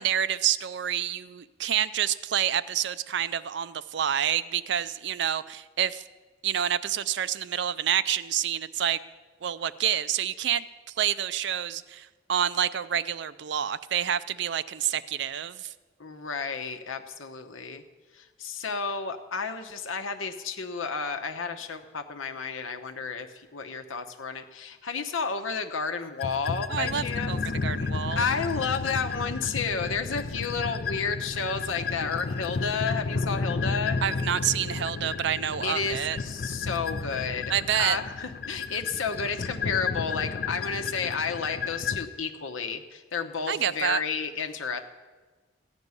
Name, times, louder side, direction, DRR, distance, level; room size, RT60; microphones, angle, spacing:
voice 1, 0.0-6.0 6.4-9.0 9.4-10.6 11.0-15.7 26.7-28.2 34.0-36.2 37.5-38.0 43.5-44.0, right 9 dB, 60° right, 15 dB, 0.4 m, -28 dB
voice 2, 16.0-17.8 18.1-23.3 23.5-27.4 28.1-34.0 35.6-37.5 37.8-44.8, left 5 dB, 80° left, 6 dB, 1.0 m, -31 dB
sound 1, 26.2-42.0, left 4 dB, 50° left, 0.5 m, -32 dB
15.0 x 5.3 x 9.6 m, 1.4 s
head